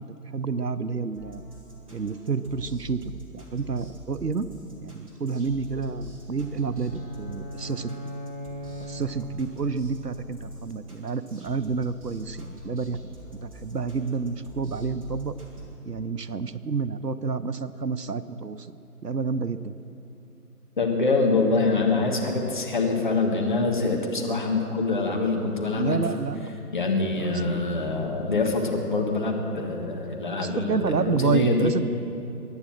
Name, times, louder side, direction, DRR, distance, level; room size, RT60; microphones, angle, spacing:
voice 1, 0.3-1.4 1.9-3.0 3.3-4.5 4.8-7.9 8.9-13.0 13.4-15.4 15.9-19.8 25.8-26.5 27.1-27.7 30.4-31.9, right 5 dB, 80° right, 13 dB, 0.9 m, -29 dB
sound 1, 1.1-15.7, equal, 20° right, 2.2 m, -44 dB
sound 2, 6.0-9.5, equal, 10° left, 3.9 m, -39 dB
voice 2, 20.8-26.0 26.7-31.7, left 3 dB, 30° left, 1 dB, 1.7 m, -25 dB
22.5 x 9.8 x 6.2 m, 2.9 s
figure-of-eight pair, 155°, 47 cm